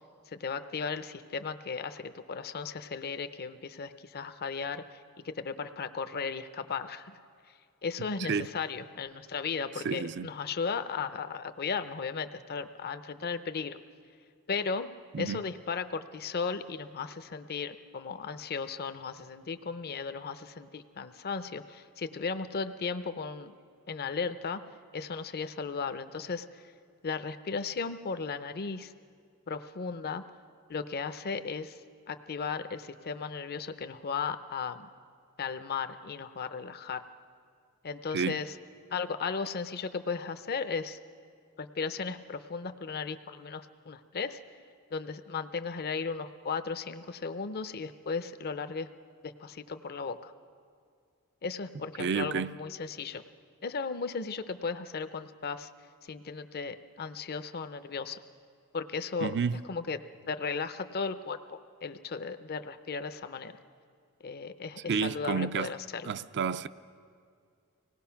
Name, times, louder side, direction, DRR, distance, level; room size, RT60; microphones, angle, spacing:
voice 1, 0.3-7.2 7.8-13.8 14.5-14.9 15.2-23.5 23.9-24.6 24.9-26.6 27.0-28.9 29.5-30.2 30.7-31.8 32.1-34.9 35.4-37.0 37.8-38.5 38.9-41.0 41.6-44.4 44.9-48.9 49.2-50.3 51.4-53.2 53.6-55.7 56.0-58.2 58.7-59.3 59.7-63.6 64.2-66.1, left 5 dB, 45° left, 0.6 m, -36 dB
voice 2, 9.8-10.3 15.1-15.4 38.1-38.4 52.0-52.6 59.2-59.6 64.9-65.7 66.0-66.7, right 6 dB, 50° right, 0.5 m, -30 dB
25.0 x 18.5 x 5.8 m
head